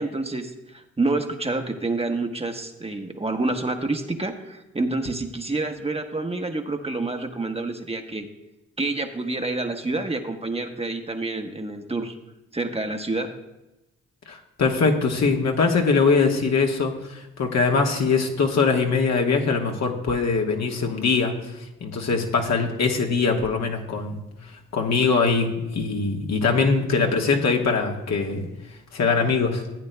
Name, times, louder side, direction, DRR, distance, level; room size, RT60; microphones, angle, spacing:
voice 1, 0.0-8.3 8.8-12.1 12.5-13.3, right 2 dB, 20° right, 4 dB, 1.1 m, -28 dB
voice 2, 14.3-21.3 21.8-24.2 24.7-28.4 28.9-29.6, left 4 dB, 60° left, 2 dB, 1.4 m, -22 dB
15.0 x 8.9 x 2.2 m, 0.98 s
supercardioid pair, 50°, 31 cm